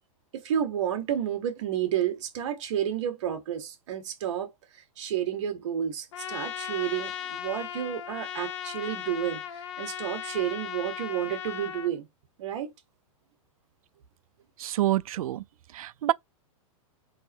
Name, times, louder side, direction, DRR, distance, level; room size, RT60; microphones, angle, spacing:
voice 1, 0.3-12.1 12.4-12.7, right 10 dB, 55° right, 1.5 m, -31 dB
Trumpet, 6.1-11.9, left 9 dB, 55° left, 0.6 m, -37 dB
voice 2, 14.6-15.4 15.7-16.1, right 14 dB, 80° right, 0.4 m, -27 dB
3.9 x 3.0 x 4.4 m
hypercardioid pair, 160°, 18 cm